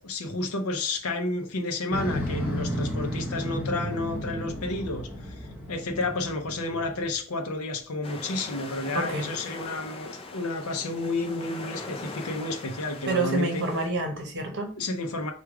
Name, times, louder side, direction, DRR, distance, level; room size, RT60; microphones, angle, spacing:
voice 1, 0.0-13.6 14.8-15.3, left 2 dB, 75° left, 3 dB, 0.6 m, -31 dB
Motorcycle, 1.9-7.1, equal, 5° right, 1.1 m, -33 dB
sound 1, 8.0-13.9, left 3 dB, 25° left, 0.5 m, -41 dB
voice 2, 8.9-9.3 13.1-14.7, right 2 dB, 55° right, 2 dB, 1.1 m, -28 dB
4.7 x 2.4 x 4.7 m, 0.43 s
head